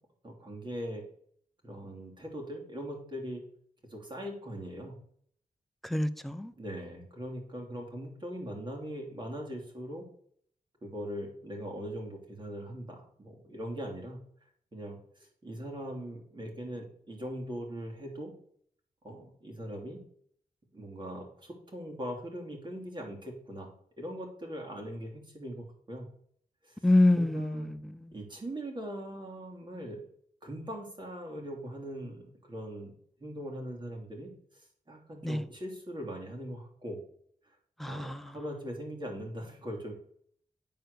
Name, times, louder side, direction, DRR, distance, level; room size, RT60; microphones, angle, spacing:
voice 1, 0.2-1.0 1.6-3.4 3.9-5.0 6.6-10.1 10.8-14.2 14.7-18.3 19.0-20.0 20.7-23.7 24.0-26.1 26.6-26.8 27.1-27.7 28.1-30.0 30.4-32.9 33.2-34.3 34.9-37.0 37.4-37.5 37.8-39.9, equal, 35° right, 3.0 m, -40 dB
voice 2, 5.8-6.5 26.8-27.8 35.2-35.4 37.8-38.3, left 1 dB, ahead, 0.7 m, -26 dB
9.2 x 4.4 x 6.8 m
cardioid pair, 70°, 14 cm